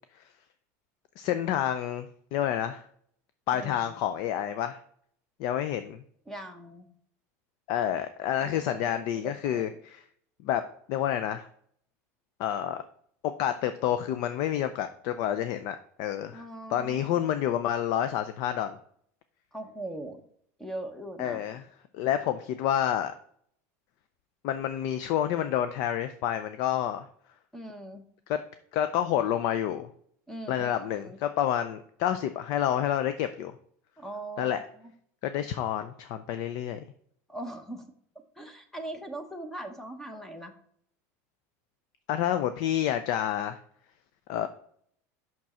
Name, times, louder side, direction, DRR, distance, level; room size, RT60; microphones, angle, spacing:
voice 1, 1.2-2.9 3.5-4.8 5.4-6.0 7.7-10.0 10.4-10.6 10.9-11.5 12.4-12.8 13.2-16.4 16.7-18.8 21.2-21.6 21.9-23.1 24.4-27.0 28.3-28.4 28.7-29.9 30.5-33.6 34.4-34.6 35.2-36.8 42.1-43.6 44.3-44.5, left 10 dB, 55° left, 10 dB, 0.5 m, -29 dB
voice 2, 3.5-3.9 6.3-6.9 8.4-9.8 16.3-17.2 19.5-20.2 20.6-21.4 27.5-28.0 30.3-31.2 34.0-34.9 37.3-37.8 38.4-40.5, right 1 dB, 5° left, 7 dB, 0.9 m, -41 dB
6.1 x 6.0 x 4.3 m, 0.64 s
supercardioid pair, 145°, 8 cm